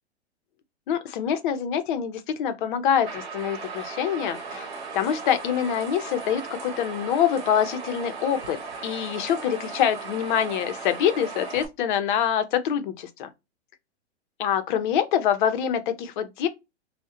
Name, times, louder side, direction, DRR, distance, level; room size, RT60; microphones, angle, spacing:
voice 1, 0.9-4.7 4.9-8.6 8.8-13.3 14.4-16.5, left 9 dB, 45° left, 0.5 m, -25 dB
sound 1, 3.0-11.7, right 4 dB, 65° right, 0.9 m, -37 dB
2.3 x 2.1 x 2.7 m
hypercardioid pair, 130°, 34 cm